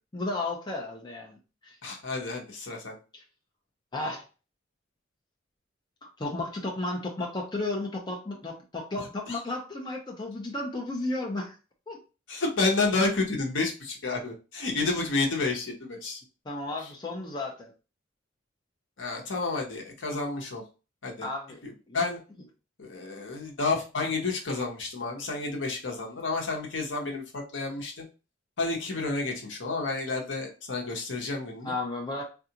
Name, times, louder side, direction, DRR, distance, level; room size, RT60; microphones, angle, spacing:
voice 1, 0.1-1.4 1.6-1.7 3.9-4.2 6.2-11.6 11.9-12.0 16.5-17.7 21.2-21.6 21.9-22.0 31.6-32.2, left 2 dB, 20° left, -1 dB, 0.6 m, -33 dB
voice 2, 1.8-3.0 9.3-9.4 12.3-16.2 16.8-16.9 19.0-20.6 21.0-21.3 21.6-22.2 22.8-28.0 28.6-31.7, left 3 dB, 70° left, 1 dB, 0.9 m, -30 dB
3.7 x 2.4 x 2.8 m, 0.32 s
head